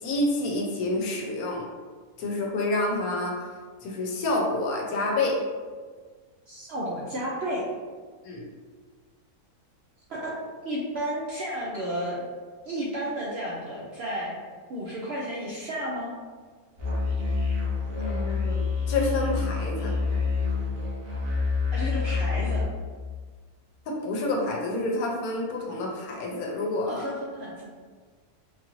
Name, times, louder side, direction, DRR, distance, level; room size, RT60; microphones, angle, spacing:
voice 1, 0.0-1.7 2.2-3.4 3.8-5.4 8.2-8.5 17.9-18.6 18.9-19.9 23.9-27.1, left 2 dB, 75° left, 0 dB, 1.1 m, -28 dB
voice 2, 6.5-7.6 10.1-12.2 12.6-14.4 14.7-16.1 21.7-22.7 26.9-27.7, equal, 65° right, -5 dB, 0.6 m, -32 dB
Musical instrument, 16.8-22.6, left 4 dB, 85° right, 1.5 m, -27 dB
3.8 x 2.5 x 3.0 m, 1.5 s
omnidirectional pair, 1.6 m